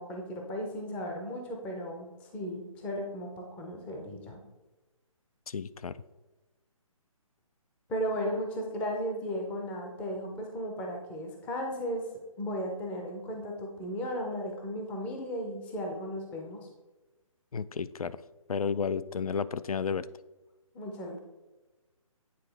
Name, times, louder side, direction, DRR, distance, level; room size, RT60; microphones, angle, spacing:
voice 1, 0.0-4.4 7.9-12.0 12.4-16.6 20.7-21.2, equal, 5° left, 1 dB, 0.4 m, -35 dB
voice 2, 5.5-6.0 17.5-18.2 18.5-20.1, left 6 dB, 90° left, 16 dB, 0.4 m, -32 dB
9.1 x 3.7 x 3.2 m, 1.1 s
hypercardioid pair, 150°, 18 cm